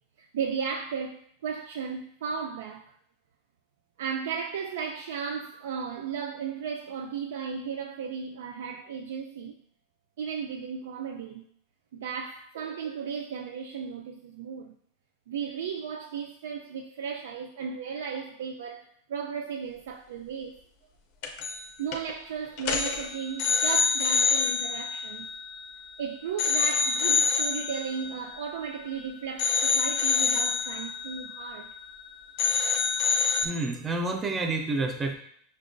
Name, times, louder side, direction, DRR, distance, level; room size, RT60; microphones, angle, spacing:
voice 1, 0.2-2.9 4.0-9.6 10.2-11.5 11.9-14.8 15.3-20.6 21.8-25.3 26.0-31.7, right 6 dB, 85° right, 0.3 m, -35 dB
sound 1, 21.2-21.7 21.9-22.1 22.6-25.9 26.4-29.0 29.4-32.1 32.4-33.5, left 6 dB, 45° left, 0.5 m, -27 dB
voice 2, 33.4-35.1, right 3 dB, 15° right, 0.4 m, -29 dB
6.0 x 2.2 x 2.5 m
supercardioid pair, 175°, 0 cm